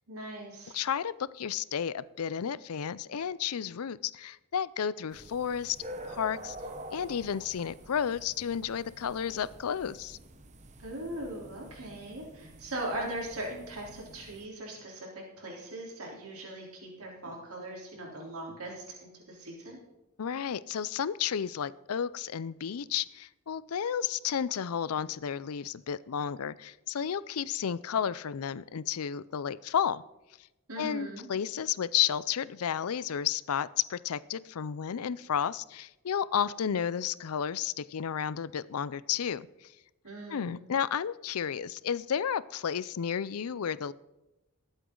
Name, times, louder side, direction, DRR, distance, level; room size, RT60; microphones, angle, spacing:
voice 1, 0.1-0.8 10.8-15.1 15.4-19.8 30.7-31.3 40.0-40.6, right 1 dB, 90° right, -2 dB, 3.6 m, -40 dB
voice 2, 0.7-5.8 6.1-6.6 6.9-10.2 20.2-30.0 30.8-39.7 40.3-43.9, left 8 dB, 90° left, 18 dB, 0.5 m, -32 dB
sound 1, 5.1-14.5, right 1 dB, 35° right, 1.0 m, -47 dB
20.5 x 8.2 x 3.8 m, 0.98 s
head